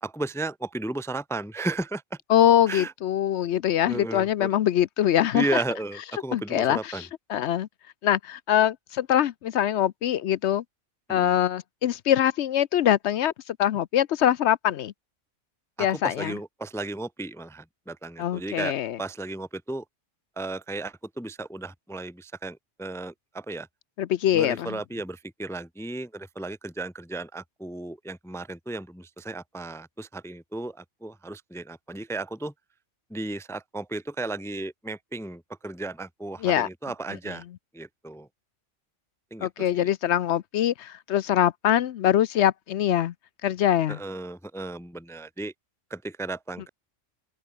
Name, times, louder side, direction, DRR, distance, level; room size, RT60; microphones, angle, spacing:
voice 1, 0.0-2.2 2.7-2.9 3.8-4.5 5.3-7.0 11.1-11.4 15.8-19.8 20.4-23.7 24.3-32.5 33.1-37.4 37.7-38.3 39.3-39.9 43.9-45.5 45.9-46.7, right 2 dB, 5° left, 0.8 m, -34 dB
voice 2, 2.3-5.6 6.3-7.7 8.0-10.6 11.1-14.9 15.8-16.3 18.2-19.0 24.0-24.8 36.4-36.7 39.4-43.1 43.4-44.0, left 11 dB, 70° left, 0.9 m, -23 dB
open air
omnidirectional pair, 1.3 m